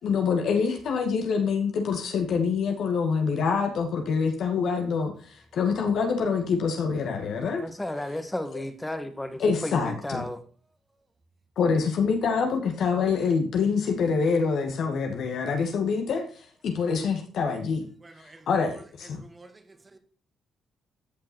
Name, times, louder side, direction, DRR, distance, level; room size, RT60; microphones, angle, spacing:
voice 1, 0.0-7.6 8.5-8.6 9.4-10.3 11.6-17.8 18.5-19.2, left 5 dB, 70° left, 2.1 m, -26 dB
voice 2, 7.6-10.4, left 1 dB, 10° left, 1.5 m, -33 dB
voice 3, 18.0-18.8 19.1-20.0, right 2 dB, 20° right, 1.9 m, -50 dB
14.0 x 5.7 x 4.5 m
cardioid pair, 90°, 0 cm